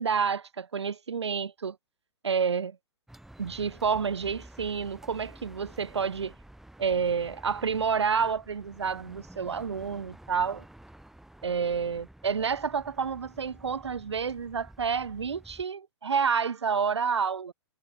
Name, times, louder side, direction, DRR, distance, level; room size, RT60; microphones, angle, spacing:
voice 1, 0.0-1.8 2.2-2.8 3.4-6.3 6.8-10.6 11.4-17.5, right 6 dB, 80° right, 0.5 m, -29 dB
sound 1, 3.1-15.6, right 1 dB, ahead, 2.0 m, -51 dB
figure-of-eight pair, 115°, 14 cm